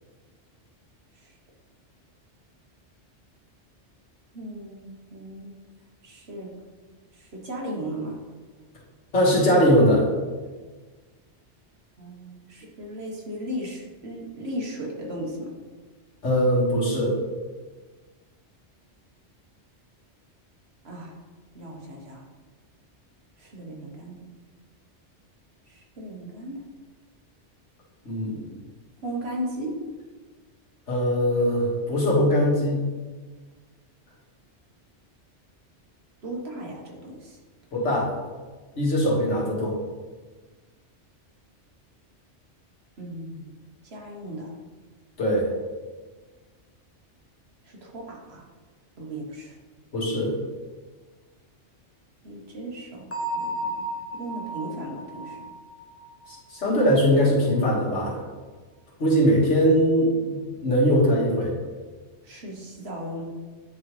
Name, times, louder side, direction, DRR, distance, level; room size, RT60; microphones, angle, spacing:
voice 1, 4.3-5.5 6.0-6.5 7.1-8.2 12.0-15.5 20.8-21.2 21.5-22.2 23.4-24.3 25.7-26.6 29.0-29.8 36.2-37.4 43.0-43.5 43.9-44.5 47.6-48.4 49.0-49.6 52.2-55.5 62.2-63.2, right 1 dB, 65° right, -1 dB, 1.4 m, -36 dB
voice 2, 9.1-10.1 16.2-17.1 28.0-28.5 30.9-32.8 37.7-38.1 38.8-39.8 45.2-45.5 49.9-50.3 56.3-58.2 59.0-61.5, equal, 85° left, -6 dB, 2.2 m, -21 dB
Bell, 53.1-56.8, right 1 dB, 15° left, 0.5 m, -34 dB
9.3 x 3.8 x 3.2 m, 1.4 s
omnidirectional pair, 1.2 m